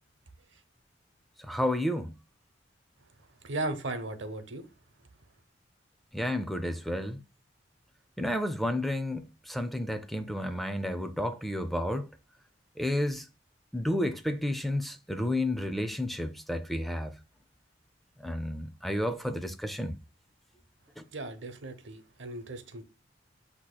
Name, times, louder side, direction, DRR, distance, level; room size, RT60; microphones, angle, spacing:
voice 1, 1.4-2.1 6.1-7.2 8.2-12.1 12.8-13.3 13.7-17.1 18.2-20.0 21.0-21.1, left 1 dB, ahead, 0.4 m, -31 dB
voice 2, 3.4-4.6 21.1-22.8, right 2 dB, 85° right, 0.9 m, -36 dB
7.9 x 2.9 x 2.2 m
head